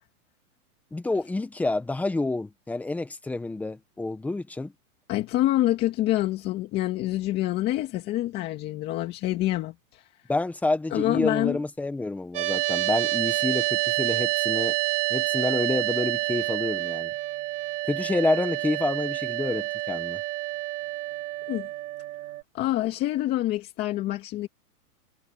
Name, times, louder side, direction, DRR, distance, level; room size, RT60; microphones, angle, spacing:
voice 1, 0.9-4.7 10.3-14.7 15.1-17.1 17.9-20.2, left 2 dB, 5° left, 1.3 m, -28 dB
voice 2, 5.1-10.1 10.9-11.6 21.5-21.7 22.5-24.5, left 15 dB, 20° left, 2.2 m, -26 dB
sound 1, 12.3-22.4, right 18 dB, 50° right, 4.8 m, -28 dB
hypercardioid pair, 165°, 45 cm